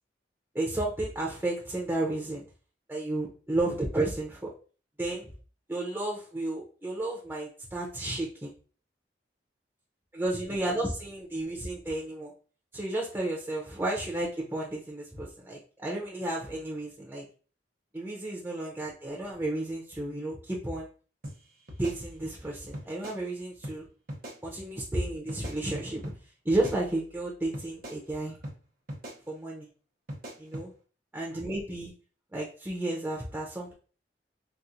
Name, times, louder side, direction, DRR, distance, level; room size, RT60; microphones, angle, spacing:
voice 1, 0.5-2.4 2.9-4.5 5.0-5.3 5.7-8.5 10.1-12.3 12.7-17.3 17.9-20.9 21.8-23.9 24.4-26.0 26.4-28.4 29.3-29.7 30.4-30.7 31.1-31.9 32.3-33.7, right 2 dB, 10° right, -3 dB, 0.6 m, -32 dB
sound 1, 21.2-21.4 21.7-22.4 22.7-23.2 23.6-23.8 24.1-24.4 25.3-26.2 26.5-27.2 27.5-28.0 28.4-28.6 28.9-29.2 30.1-30.7, equal, 55° right, 0.8 m, -41 dB
4.2 x 2.1 x 2.5 m, 0.38 s
head